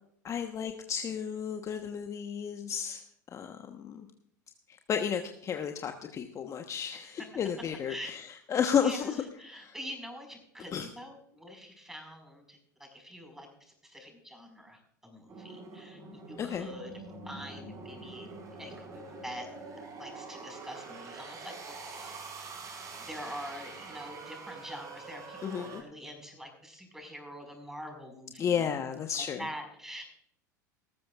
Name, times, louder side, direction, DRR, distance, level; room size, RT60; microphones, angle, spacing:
voice 1, 0.2-3.0 3.3-4.1 4.7-9.2 9.5-9.7 10.7-10.9 16.4-16.7 25.4-25.8 28.4-29.5, left 7 dB, 30° left, 5 dB, 1.2 m, -32 dB
voice 2, 8.8-13.5 13.8-16.0 16.3-16.9 17.2-18.3 18.6-19.5 20.0-22.1 23.1-28.7 28.9-30.0, equal, 5° right, 4 dB, 5.2 m, -45 dB
sound 1, 15.3-25.8, right 3 dB, 35° right, 4.9 m, -45 dB
18.5 x 14.5 x 2.5 m, 0.69 s
figure-of-eight pair, 80°, 10 cm